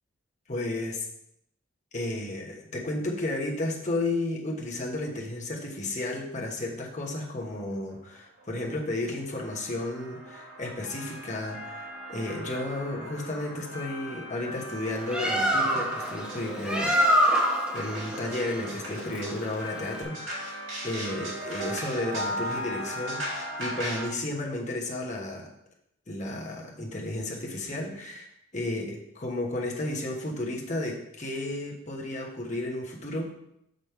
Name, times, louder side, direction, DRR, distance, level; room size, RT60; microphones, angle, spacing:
voice 1, 0.5-1.1 1.9-17.0 17.2-25.5 26.1-33.5, left 2 dB, 35° left, -1 dB, 1.1 m, -33 dB
sound 1, 7.5-7.6 7.9-8.1 8.4-24.1, equal, 65° right, 2.8 m, -38 dB
Bird, 14.9-20.0, equal, 5° right, 0.8 m, -26 dB
6.1 x 5.2 x 4.6 m, 0.78 s
head